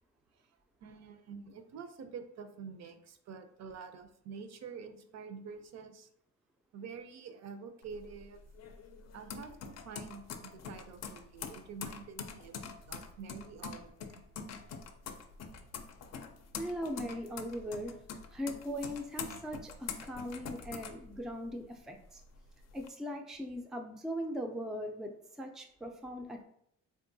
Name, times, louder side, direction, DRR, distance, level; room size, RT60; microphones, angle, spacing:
voice 1, 0.3-6.1 6.7-8.4 9.1-14.2, right 5 dB, 60° right, 8 dB, 0.5 m, -48 dB
sound 1, 7.8-21.6 22.0-22.9, left 6 dB, 60° left, 0.5 m, -45 dB
voice 2, 16.6-18.0 18.3-22.2 22.7-25.1 25.4-26.5, equal, ahead, 3 dB, 0.3 m, -39 dB
3.6 x 2.6 x 2.6 m, 0.72 s
cardioid pair, 90°, 30 cm